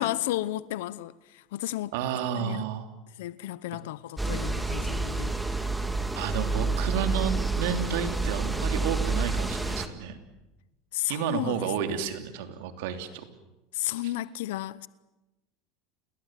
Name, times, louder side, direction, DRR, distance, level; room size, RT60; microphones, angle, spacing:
voice 1, 0.0-1.9 2.3-2.7 3.2-5.6 10.9-12.0 13.7-14.9, left 15 dB, 80° left, 0.8 m, -33 dB
voice 2, 1.9-2.9 3.7-3.8 6.1-10.2 11.1-13.3, right 8 dB, 75° right, 3.0 m, -31 dB
sound 1, 4.2-9.9, right 3 dB, 5° right, 2.1 m, -29 dB
29.0 x 21.0 x 7.6 m
supercardioid pair, 110°, 0 cm